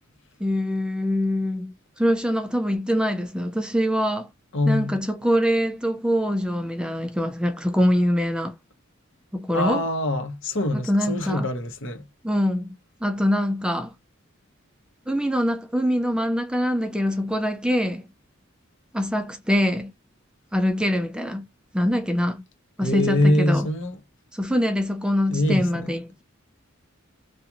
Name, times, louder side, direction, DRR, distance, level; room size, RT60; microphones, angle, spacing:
voice 1, 0.4-4.3 4.7-8.6 9.3-9.8 10.7-11.5 12.2-13.9 15.1-18.1 18.9-19.9 20.5-21.5 21.7-22.4 22.8-23.7 24.3-26.2, equal, 5° right, 0.3 m, -24 dB
voice 2, 4.5-5.0 9.5-12.0 22.8-24.0 25.3-25.9, left 1 dB, 65° left, 1.0 m, -24 dB
2.9 x 2.4 x 2.4 m
head